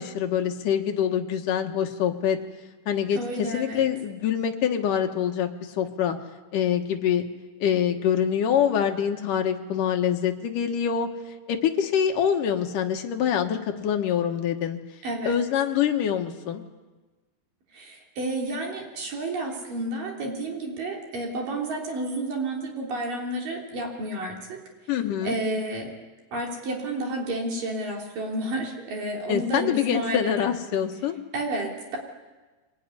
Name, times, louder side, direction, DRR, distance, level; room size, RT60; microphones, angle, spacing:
voice 1, 0.0-2.4 2.9-5.5 5.8-6.2 6.5-7.3 7.6-11.1 11.5-14.8 15.3-16.6 24.9-25.3 29.3-31.2, left 8 dB, 60° left, 4 dB, 2.5 m, -25 dB
voice 2, 3.1-3.9 15.0-15.3 17.7-24.6 25.2-25.9 26.3-30.5 31.3-32.0, right 1 dB, 50° right, 0 dB, 4.9 m, -31 dB
24.5 x 19.5 x 9.8 m, 1.2 s
omnidirectional pair, 5.0 m